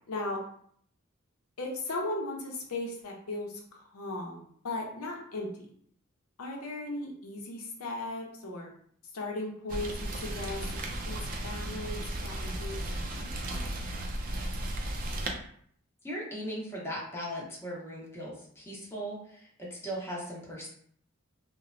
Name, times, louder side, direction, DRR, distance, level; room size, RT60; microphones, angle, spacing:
voice 1, 0.1-0.4 1.6-5.7 6.4-8.7 9.1-10.8 11.1-13.0 13.2-13.8, left 2 dB, 90° left, 0 dB, 0.6 m, -37 dB
Rain, 9.7-15.3, right 1 dB, 40° right, 0.4 m, -35 dB
voice 2, 16.0-20.7, equal, 10° left, -5 dB, 0.7 m, -38 dB
3.0 x 2.1 x 2.5 m, 0.62 s
head